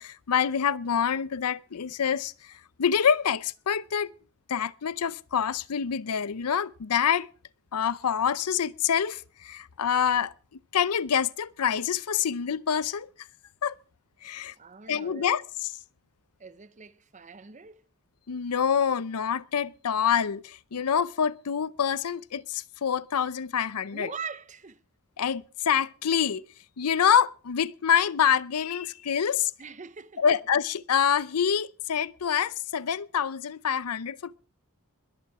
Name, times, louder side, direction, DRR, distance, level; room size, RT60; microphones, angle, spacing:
voice 1, 0.0-2.5 2.8-4.1 4.5-7.3 7.7-10.3 10.7-13.1 13.6-13.8 14.2-14.5 14.9-15.7 18.3-24.1 25.2-26.4 26.8-29.5 30.2-34.4, left 8 dB, 80° left, 0.6 m, -26 dB
voice 2, 14.6-15.3 16.4-17.8 23.9-24.8 29.6-30.2, right 5 dB, 35° right, 0.8 m, -42 dB
22.0 x 7.8 x 4.7 m
head